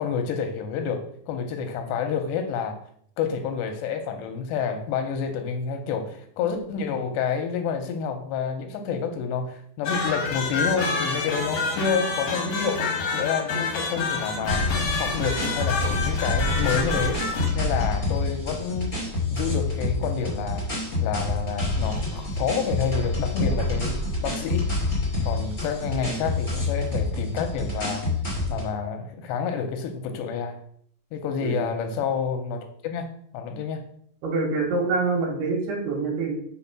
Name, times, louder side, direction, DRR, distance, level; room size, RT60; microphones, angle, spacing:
voice 1, 0.0-2.8 3.2-12.8 13.1-14.6 15.0-17.2 17.6-18.9 19.3-20.7 21.0-24.7 25.3-28.0 28.5-30.6 31.1-33.8, left 6 dB, 85° left, 6 dB, 2.7 m, -29 dB
sound 1, 9.8-17.5, left 4 dB, 65° left, 1.8 m, -28 dB
sound 2, 14.5-28.7, left 2 dB, 25° left, 1.8 m, -27 dB
voice 2, 34.2-36.3, right 4 dB, 70° right, 1 dB, 2.9 m, -25 dB
5.9 x 4.2 x 5.8 m, 0.65 s
omnidirectional pair, 5.2 m